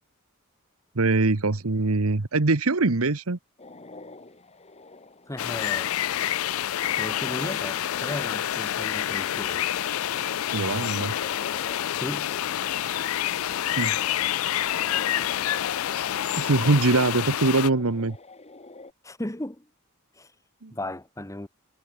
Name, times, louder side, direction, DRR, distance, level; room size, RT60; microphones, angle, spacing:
voice 1, 0.9-3.4 10.5-11.1 13.8-14.0 16.4-18.2 20.6-20.7, right 3 dB, 85° right, 1.2 m, -23 dB
sound 1, 3.6-18.9, left 3 dB, 30° left, 2.6 m, -47 dB
voice 2, 5.3-5.9 7.0-9.7 11.9-12.3 19.0-19.7 20.1-20.3 20.7-21.5, left 1 dB, 15° left, 1.8 m, -35 dB
sound 2, 5.4-17.7, left 11 dB, 75° left, 0.4 m, -28 dB
head